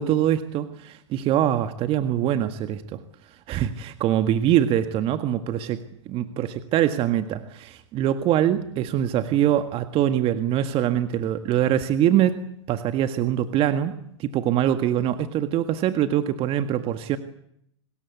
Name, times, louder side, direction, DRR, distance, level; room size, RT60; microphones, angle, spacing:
voice 1, 0.0-3.0 3.5-5.8 6.1-12.4 12.7-13.9 14.2-17.2, right 11 dB, 35° right, 9 dB, 1.8 m, -23 dB
26.5 x 20.0 x 8.5 m, 0.73 s
hypercardioid pair, 110°, 16 cm